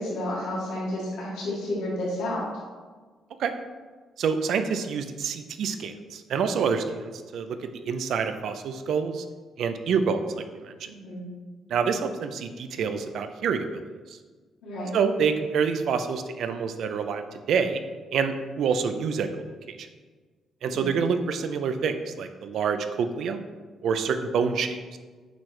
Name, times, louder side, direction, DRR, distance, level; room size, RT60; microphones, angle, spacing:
voice 1, 0.0-2.5 10.9-11.2 14.6-14.9 20.7-20.9, left 1 dB, 90° left, -7 dB, 2.0 m, -31 dB
voice 2, 4.2-7.6 7.9-9.2 9.6-10.9 11.7-13.8 14.9-17.2 17.5-17.8 18.1-19.3 19.7-19.9 20.6-23.4 23.8-25.0, right 6 dB, 70° right, 9 dB, 0.5 m, -27 dB
8.0 x 4.6 x 3.2 m, 1.4 s
cardioid pair, 90°, 0 cm